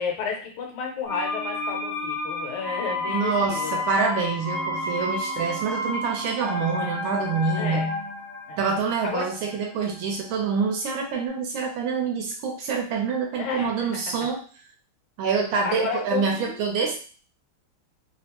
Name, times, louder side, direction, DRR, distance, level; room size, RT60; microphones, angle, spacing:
voice 1, 0.0-3.8 7.6-7.9 8.5-8.6 9.0-9.3 13.4-13.9 15.6-17.0, left 6 dB, 75° left, 2 dB, 1.6 m, -32 dB
sound 1, 1.0-10.8 11.1-11.2, left 2 dB, 50° right, 1.0 m, -31 dB
voice 2, 3.1-8.0 8.6-14.4 15.2-17.0, right 5 dB, 75° right, 1 dB, 1.3 m, -26 dB
3.6 x 2.0 x 2.9 m, 0.40 s
omnidirectional pair, 2.4 m